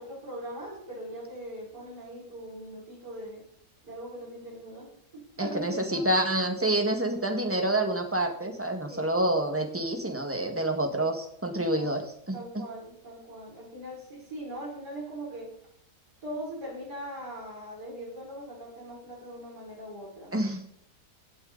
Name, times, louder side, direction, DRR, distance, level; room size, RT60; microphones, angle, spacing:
voice 1, 0.0-3.4 3.8-6.1 8.4-8.5 8.9-9.1 10.9-11.1 11.8-11.9 12.3-15.5 16.2-20.3, right 1 dB, 80° right, -4 dB, 6.0 m, -41 dB
voice 2, 5.4-12.6 20.3-20.7, right 1 dB, 10° right, 4 dB, 1.7 m, -28 dB
17.0 x 8.6 x 4.1 m, 0.74 s
omnidirectional pair, 1.7 m